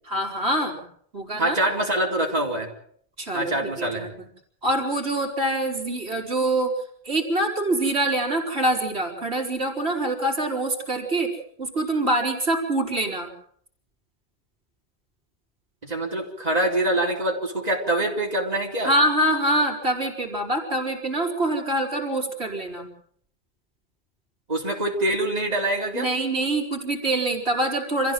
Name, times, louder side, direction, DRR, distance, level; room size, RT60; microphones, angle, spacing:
voice 1, 0.0-0.8 1.1-1.5 3.2-4.1 4.6-6.7 7.0-13.3 18.8-22.9 25.9-28.1, right 1 dB, 70° right, 0 dB, 4.8 m, -25 dB
voice 2, 1.4-2.7 3.3-4.1 15.8-18.9 24.5-26.1, right 1 dB, 35° right, -2 dB, 4.3 m, -25 dB
27.0 x 15.5 x 7.7 m, 0.65 s
omnidirectional pair, 1.1 m